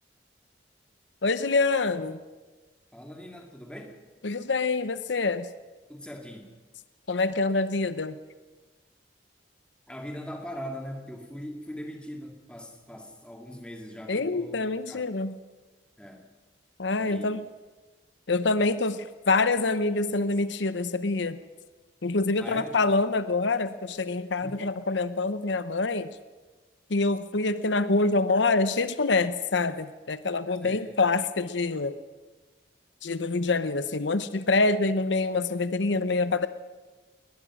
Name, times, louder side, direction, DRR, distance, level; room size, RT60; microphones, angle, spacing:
voice 1, 1.2-2.2 4.2-5.5 7.1-8.2 14.1-15.3 16.8-17.4 18.3-21.4 22.0-26.1 26.9-32.0 33.0-36.5, left 3 dB, 80° left, 13 dB, 0.8 m, -26 dB
voice 2, 2.9-4.0 5.9-6.5 9.9-14.6 14.9-15.1 16.0-16.3 17.0-17.3 22.4-22.8 24.4-24.6 30.6-30.9, equal, 5° left, 2 dB, 2.6 m, -41 dB
21.0 x 20.0 x 6.3 m, 1.3 s
head